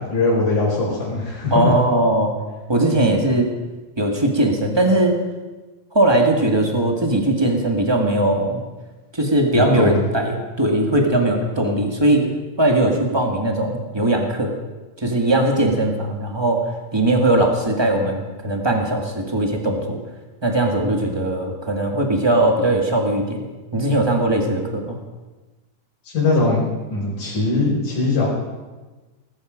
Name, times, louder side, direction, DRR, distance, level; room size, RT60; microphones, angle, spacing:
voice 1, 0.0-1.7 9.5-10.1 26.0-26.6 26.9-28.3, left 3 dB, 80° left, -8 dB, 6.4 m, -20 dB
voice 2, 1.5-2.3 2.7-3.5 4.0-5.1 5.9-8.6 9.1-12.3 12.6-14.5 15.0-16.7 16.9-20.0 20.4-23.4 23.7-25.0, right 1 dB, 15° right, 2 dB, 0.8 m, -19 dB
19.0 x 14.0 x 5.1 m, 1.2 s
omnidirectional pair, 3.7 m